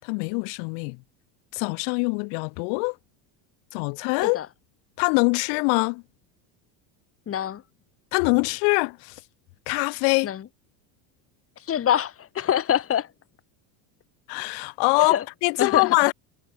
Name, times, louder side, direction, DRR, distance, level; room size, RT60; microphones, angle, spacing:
voice 1, 0.0-1.0 1.5-2.9 3.7-4.4 5.0-6.0 8.1-9.2 9.7-10.3 14.3-15.1 15.4-16.1, left 40 dB or more, 75° left, 5.0 m, -23 dB
voice 2, 7.3-7.6 10.2-10.5 11.6-13.1 15.0-15.3 15.6-16.0, left 10 dB, 30° left, 3.6 m, -25 dB
cardioid pair, 135°, 42 cm